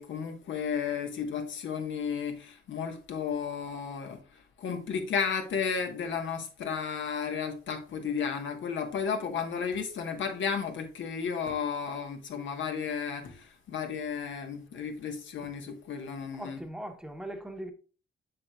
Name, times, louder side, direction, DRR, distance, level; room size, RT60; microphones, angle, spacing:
voice 1, 0.0-16.7, left 6 dB, 75° left, 1.4 m, -33 dB
voice 2, 16.3-17.7, right 1 dB, 5° right, 1.0 m, -40 dB
7.4 x 6.1 x 2.4 m
cardioid pair, 105°, 20 cm